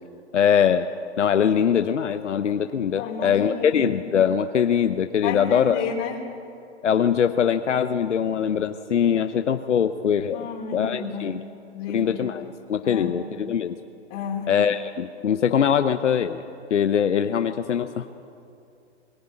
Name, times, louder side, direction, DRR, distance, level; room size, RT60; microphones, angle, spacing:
voice 1, 0.3-0.9 1.2-5.8 6.8-10.5 10.7-11.4 11.9-13.8 14.5-16.4 16.7-18.1, left 8 dB, 85° left, 9 dB, 0.9 m, -22 dB
voice 2, 3.0-3.8 5.2-6.2 10.3-11.3 11.7-12.2 12.8-13.2 14.1-14.5, left 6 dB, 40° left, 1 dB, 3.7 m, -31 dB
22.0 x 15.0 x 9.7 m, 2.6 s
hypercardioid pair, 130°, 35 cm